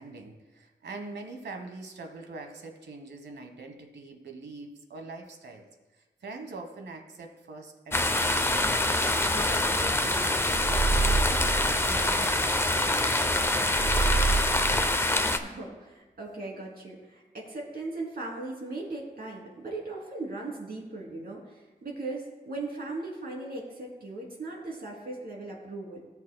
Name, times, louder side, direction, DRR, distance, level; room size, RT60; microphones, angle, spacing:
voice 1, 0.0-5.7 6.0-8.8 9.3-11.4 11.8-13.9, right 3 dB, 85° right, 4 dB, 1.2 m, -43 dB
sound 1, 7.9-15.4, left 2 dB, 15° left, 0.6 m, -25 dB
sound 2, 9.6-9.8 10.1-13.0 13.3-13.4 13.7-15.0, right 4 dB, 30° right, 0.7 m, -28 dB
voice 2, 15.4-26.0, right 2 dB, 65° right, -2 dB, 2.9 m, -38 dB
18.0 x 7.3 x 2.2 m, 1.1 s
cardioid pair, 70°, 17 cm